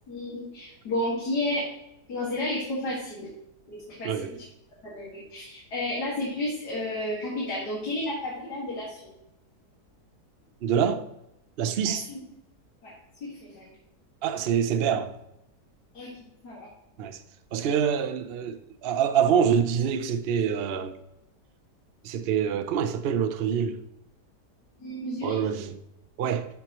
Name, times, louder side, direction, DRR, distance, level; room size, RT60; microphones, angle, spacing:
voice 1, 0.1-1.6 2.1-3.3 3.7-4.1 4.9-9.1 11.8-12.2 12.8-12.9 13.2-13.7 15.9-16.1 16.4-16.7 24.8-25.4, left 1 dB, 80° left, 2.5 m, -31 dB
voice 2, 10.6-11.0 11.6-12.1 14.2-15.1 17.0-17.2 17.5-20.9 22.0-23.8 25.2-25.8 26.2-26.5, right 8 dB, 75° right, 0.5 m, -25 dB
12.5 x 4.7 x 3.0 m
omnidirectional pair, 1.7 m